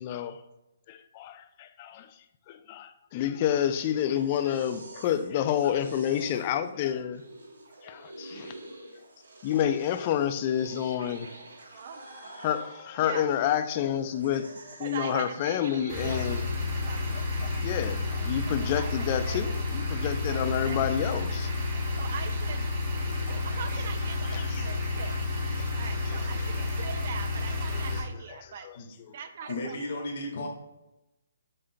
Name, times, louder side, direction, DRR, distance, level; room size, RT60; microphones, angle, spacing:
voice 1, 0.0-0.4 0.9-2.1 2.5-7.2 7.8-8.5 9.4-11.3 12.4-16.4 17.1-21.5 23.1-23.3 24.3-24.6 25.6-25.8 26.1-26.5 28.6-28.8, left 10 dB, 35° left, 0.3 m, -29 dB
sound 1, 3.4-17.6, right 2 dB, 80° right, 1.2 m, -48 dB
voice 2, 4.1-4.5 5.7-6.4 11.5-12.1 13.0-13.3 14.8-16.3 16.8-17.2 18.7-19.6 20.3-21.3 22.0-22.7 23.3-25.2 25.8-28.7 29.1-30.1, right 7 dB, 50° right, 0.5 m, -42 dB
sound 2, 15.9-28.0, left 2 dB, 20° right, 1.0 m, -30 dB
voice 3, 29.5-30.5, left 2 dB, 50° left, 1.5 m, -34 dB
6.0 x 3.8 x 2.2 m
hypercardioid pair, 155°, 0 cm